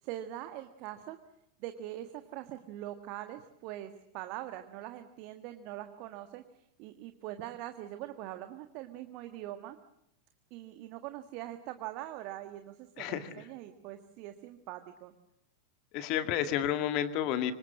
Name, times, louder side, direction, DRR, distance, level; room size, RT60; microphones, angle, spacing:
voice 1, 0.0-1.2 1.6-9.8 10.5-15.1, right 13 dB, 45° right, 8 dB, 1.6 m, -43 dB
voice 2, 13.0-13.3 15.9-17.5, left 10 dB, 40° left, 10 dB, 2.0 m, -30 dB
26.0 x 25.5 x 7.5 m, 0.80 s
figure-of-eight pair, 90°, 0 cm